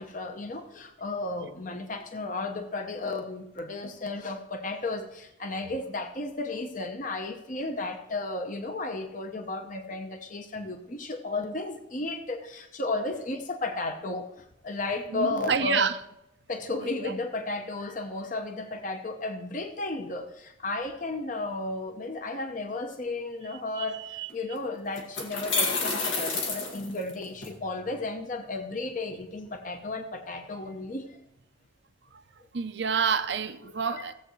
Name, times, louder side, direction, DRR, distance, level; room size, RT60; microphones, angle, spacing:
voice 1, 0.0-14.3 14.6-15.9 16.5-31.2 33.9-34.0, left 2 dB, 40° left, 0.8 m, -34 dB
voice 2, 15.1-16.0 16.8-17.1 23.8-24.3 32.1-32.2 32.5-34.1, right 6 dB, 60° right, 0.6 m, -29 dB
sound 1, 24.3-24.4 25.0-27.5, left 3 dB, 80° left, 2.0 m, -29 dB
16.5 x 7.8 x 3.1 m
head